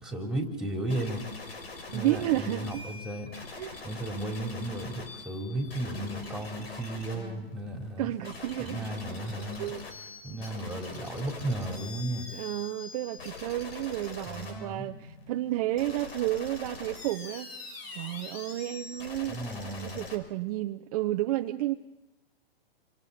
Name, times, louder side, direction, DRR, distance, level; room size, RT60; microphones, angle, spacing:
voice 1, 0.0-1.6 1.9-3.3 3.8-8.1 8.6-9.7 10.2-12.3 14.2-14.9 19.3-20.0, right 1 dB, ahead, 2 dB, 3.8 m, -34 dB
sound 1, 0.9-20.2, left 3 dB, 75° left, 5.3 m, -43 dB
voice 2, 1.9-2.8 3.6-3.8 8.0-8.8 9.6-9.8 12.3-17.5 17.9-19.4 19.8-21.7, right 15 dB, 40° right, 6 dB, 0.8 m, -31 dB
29.0 x 25.5 x 4.3 m, 0.92 s
hypercardioid pair, 140°, 31 cm